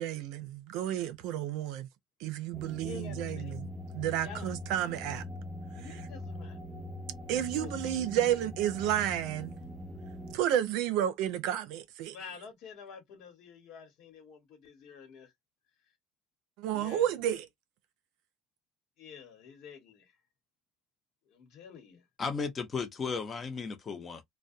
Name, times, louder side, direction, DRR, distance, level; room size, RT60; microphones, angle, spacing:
voice 1, 0.0-1.9 2.2-5.2 7.3-9.5 10.3-12.2 16.6-17.5, right 11 dB, 75° right, 0.5 m, -31 dB
sound 1, 2.5-10.4, left 1 dB, 10° right, 0.4 m, -42 dB
voice 2, 2.8-3.5 4.2-4.6 4.9-5.0 5.7-6.6 7.5-7.8 12.1-15.3 16.7-17.1 19.0-20.2 21.2-22.0, left 6 dB, 65° left, 1.2 m, -48 dB
voice 3, 22.2-24.2, left 5 dB, 30° left, 0.7 m, -35 dB
2.3 x 2.2 x 2.6 m
supercardioid pair, 110°, 0 cm